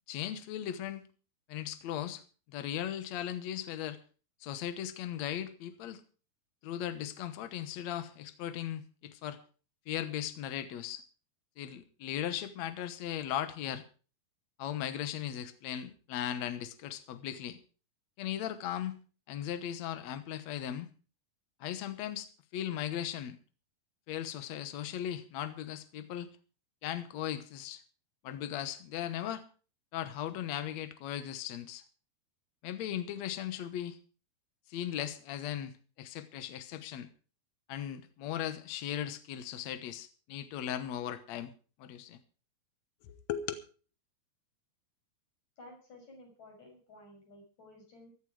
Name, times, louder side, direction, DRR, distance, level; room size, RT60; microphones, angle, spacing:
voice 1, 0.1-1.1 1.5-2.2 2.5-4.0 4.4-6.0 6.6-9.4 9.9-11.0 11.6-13.8 14.6-17.6 18.2-19.0 19.3-20.9 21.6-23.4 24.1-26.3 26.8-27.8 28.2-29.4 29.9-31.8 32.6-34.0 34.7-37.1 37.7-41.5 41.8-42.2 43.0-43.5, left 11 dB, 75° left, 11 dB, 1.6 m, -37 dB
voice 2, 45.6-48.1, left 1 dB, 45° left, 1 dB, 7.2 m, -54 dB
15.5 x 12.5 x 4.8 m, 0.37 s
omnidirectional pair, 4.6 m